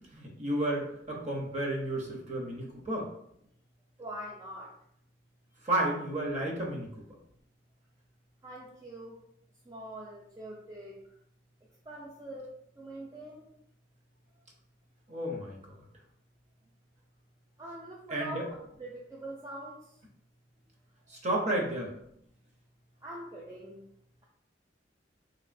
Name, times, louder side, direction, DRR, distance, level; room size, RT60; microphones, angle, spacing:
voice 1, 0.1-3.1 5.6-6.9 15.1-15.8 18.1-18.5 21.1-21.9, right 1 dB, 40° right, -1 dB, 0.7 m, -32 dB
voice 2, 4.0-4.7 8.4-9.2 9.7-11.0 11.9-12.5 12.8-13.4 17.6-19.7 23.0-23.8, right 1 dB, 20° right, -4 dB, 0.3 m, -43 dB
3.0 x 2.7 x 2.5 m, 0.72 s
head